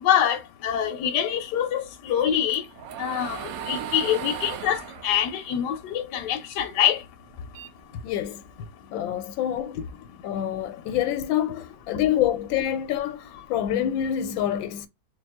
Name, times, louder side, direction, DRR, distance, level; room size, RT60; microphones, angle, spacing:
voice 1, 0.0-2.6 3.0-7.0, left 10 dB, 70° left, 1.1 m, -25 dB
sound 1, 2.1-6.6 7.0-8.5, right 10 dB, 90° right, 0.7 m, -37 dB
voice 2, 8.0-8.4 8.9-10.0 10.2-14.9, left 11 dB, 85° left, 1.3 m, -27 dB
3.5 x 2.8 x 3.3 m
omnidirectional pair, 2.1 m